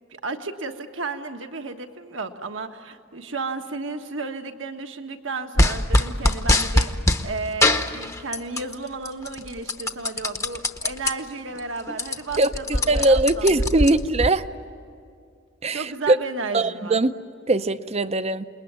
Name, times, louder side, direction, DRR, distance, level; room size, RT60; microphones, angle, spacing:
voice 1, 0.1-13.8 15.7-17.0, right 3 dB, 70° right, 1.4 m, -33 dB
sound 1, 5.6-7.2 7.6-8.7 9.1-11.1 11.6-11.7 11.9-14.3, left 1 dB, 15° left, 0.9 m, -22 dB
voice 2, 12.9-14.4 15.6-16.2 16.5-17.1 17.5-18.4, right 2 dB, 35° right, 0.7 m, -20 dB
28.0 x 21.0 x 9.6 m
head